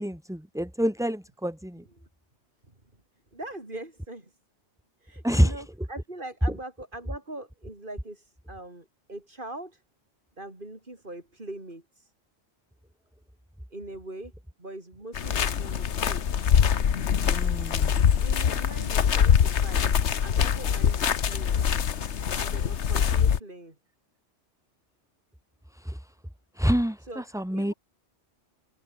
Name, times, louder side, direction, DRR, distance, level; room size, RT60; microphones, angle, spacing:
voice 1, 0.0-1.8 5.2-5.6 17.2-17.9 25.7-26.0 26.6-27.7, equal, 5° right, 2.2 m, -27 dB
voice 2, 3.3-4.3 5.0-9.8 10.4-11.8 13.7-14.3 14.6-16.3 18.2-19.8 20.2-21.6 22.3-23.8 27.1-27.2 27.5-27.7, right 1 dB, 45° right, 4.7 m, -42 dB
sound 1, 15.1-23.4, left 8 dB, 70° left, 1.3 m, -24 dB
omnidirectional pair, 1.2 m